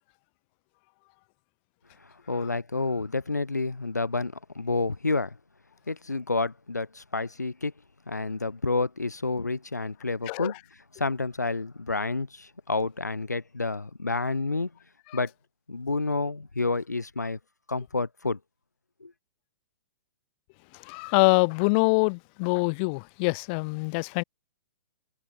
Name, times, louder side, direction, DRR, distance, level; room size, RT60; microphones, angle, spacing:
voice 1, 2.0-5.4 5.9-7.7 8.1-10.5 10.9-14.7 15.1-15.3 15.7-17.4 17.7-18.4 19.0-19.1, left 3 dB, 90° left, 7.9 m, -29 dB
voice 2, 20.7-24.2, left 33 dB, 40° left, 7.2 m, -25 dB
figure-of-eight pair, 115°, 9 cm